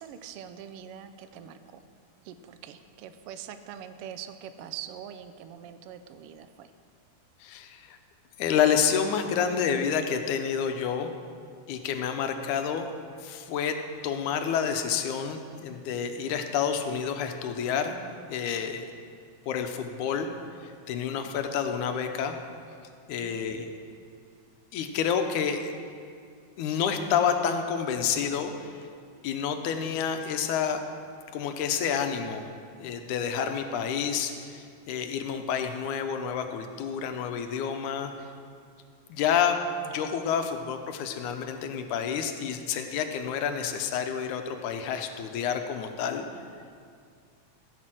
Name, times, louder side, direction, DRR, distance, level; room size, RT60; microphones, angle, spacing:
voice 1, 0.0-1.8 2.2-6.7 23.2-23.6, right 9 dB, 85° right, 9 dB, 1.2 m, -43 dB
voice 2, 7.4-8.0 8.4-11.1 11.7-12.9 13.2-13.8 14.0-18.0 18.3-18.9 19.5-20.3 20.6-22.4 23.1-23.7 24.7-25.7 26.6-28.7 29.2-30.8 31.3-32.5 32.8-38.1 39.1-46.3, left 7 dB, 85° left, 6 dB, 2.3 m, -29 dB
15.5 x 6.7 x 7.6 m, 2.2 s
omnidirectional pair, 3.4 m